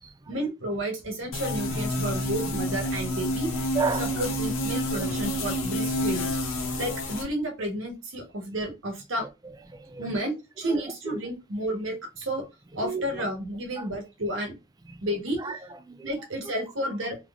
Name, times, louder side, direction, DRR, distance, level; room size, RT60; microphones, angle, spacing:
voice 1, 0.3-3.5 4.1-6.3 6.8-9.3 10.0-12.5 12.7-14.6 15.0-15.4 16.0-17.3, right 1 dB, 75° right, 1.2 m, -31 dB
sound 1, 1.3-7.2, left 1 dB, 85° left, 1.0 m, -29 dB
voice 2, 3.7-4.1 6.7-6.8 9.7-10.1 10.6-11.2 12.8-13.3 13.8-13.9 14.9-15.1 15.4-16.1, right 4 dB, 20° right, 0.3 m, -33 dB
3.7 x 3.0 x 2.4 m
head